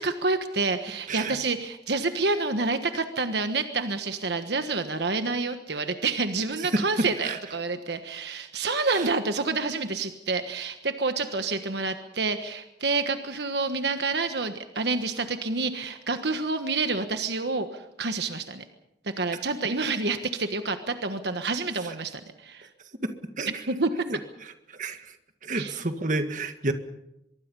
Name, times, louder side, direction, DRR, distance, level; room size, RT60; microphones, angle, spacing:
voice 1, 0.0-18.6 19.2-22.7 23.7-23.9 25.5-25.7, right 3 dB, 70° right, 8 dB, 1.4 m, -28 dB
voice 2, 6.6-7.4 8.9-9.1 21.8-21.9 23.4-23.5 24.1-24.2 24.7-25.1 25.4-26.7, right 2 dB, 45° right, 7 dB, 1.8 m, -30 dB
24.0 x 23.0 x 5.5 m, 0.85 s
head